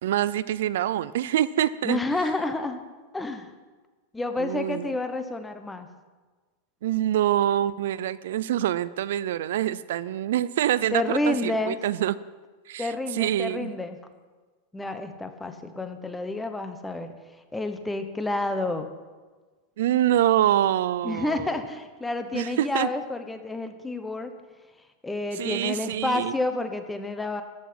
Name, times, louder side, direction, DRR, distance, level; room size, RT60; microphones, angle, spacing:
voice 1, 0.0-2.0 4.4-5.0 6.8-12.2 12.7-13.7 19.8-21.6 22.3-22.9 25.3-26.3, right 12 dB, 75° right, 17 dB, 0.5 m, -25 dB
voice 2, 1.8-2.8 3.1-3.5 4.1-5.9 10.9-11.8 12.8-14.0 14.7-17.1 17.5-18.9 21.0-24.3 25.0-27.4, left 2 dB, 5° left, 8 dB, 0.8 m, -29 dB
14.0 x 6.2 x 9.4 m, 1.4 s
supercardioid pair, 170°, 0 cm